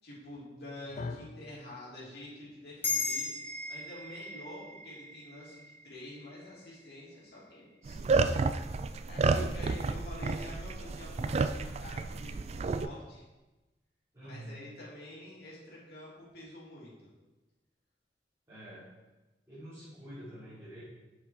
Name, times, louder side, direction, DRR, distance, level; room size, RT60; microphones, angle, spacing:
voice 1, 0.0-3.3 3.7-7.6 9.1-13.2 14.3-16.9, left 1 dB, 60° left, -6 dB, 3.2 m, -47 dB
sound 1, 1.0-9.2, left 3 dB, 40° left, 0.4 m, -51 dB
sound 2, 2.8-7.5, left 4 dB, 10° left, 1.6 m, -38 dB
voice 2, 7.8-8.4 14.1-14.6 18.5-18.9 19.5-20.8, right 1 dB, 20° right, -13 dB, 3.1 m, -47 dB
sound 3, 7.9-12.9, right 4 dB, 35° right, 0.3 m, -30 dB
7.5 x 6.1 x 4.8 m, 1.1 s
head